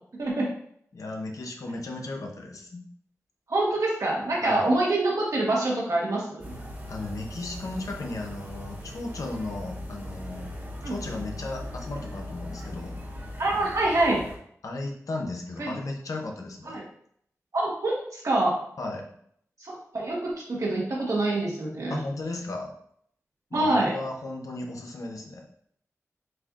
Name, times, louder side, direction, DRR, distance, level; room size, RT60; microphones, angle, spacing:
voice 1, 0.9-2.9 4.4-4.7 6.9-10.5 10.8-13.0 13.5-13.7 14.6-16.8 18.8-19.0 21.9-22.7 23.5-25.5, left 2 dB, 75° left, 2 dB, 0.8 m, -35 dB
voice 2, 3.5-6.5 10.8-11.0 13.4-14.2 15.6-15.7 16.7-16.8 17.5-18.5 19.6-22.0 23.5-23.9, right 2 dB, 70° right, -3 dB, 1.4 m, -26 dB
sound 1, 6.4-14.4, left 1 dB, 35° right, 1.5 m, -39 dB
7.6 x 2.6 x 2.5 m, 0.67 s
wide cardioid pair, 65°, 6 cm